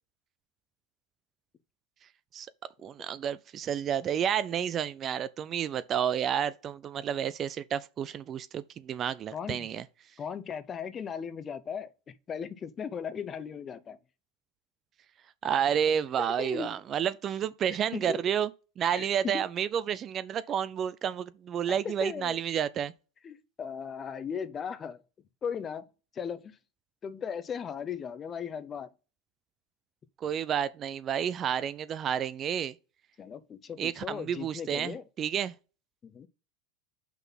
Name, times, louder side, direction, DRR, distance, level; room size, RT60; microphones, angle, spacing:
voice 1, 2.8-9.8 15.4-18.5 18.8-22.9 30.2-32.7 33.8-35.5, right 8 dB, 35° right, 0.4 m, -30 dB
voice 2, 9.3-9.7 10.2-14.0 16.2-16.7 17.7-18.2 18.9-19.5 21.8-22.4 23.2-25.0 25.4-25.9 26.1-26.6 27.0-28.9 33.2-35.0 36.0-36.3, left 7 dB, 30° left, 0.7 m, -37 dB
5.7 x 3.8 x 5.8 m
hypercardioid pair, 105°, 0 cm